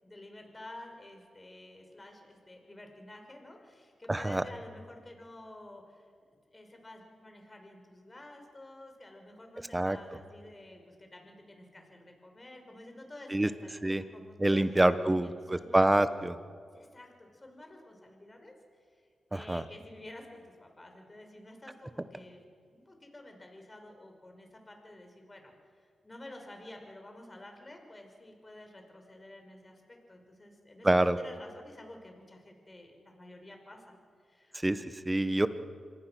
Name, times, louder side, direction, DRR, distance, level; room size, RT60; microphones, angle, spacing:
voice 1, 0.0-6.1 6.5-15.9 16.7-18.5 18.8-19.0 19.3-22.4 22.7-25.5 25.8-30.9 31.2-34.0 34.2-34.6, left 1 dB, 25° left, 3 dB, 5.4 m, -51 dB
voice 2, 4.1-4.4 9.7-10.0 13.3-13.5 13.8-14.0 14.4-16.4 19.3-19.6 30.8-31.2 34.6-35.5, right 1 dB, 15° right, 12 dB, 1.2 m, -26 dB
26.5 x 19.5 x 6.3 m, 2.1 s
cardioid pair, 55°, 0 cm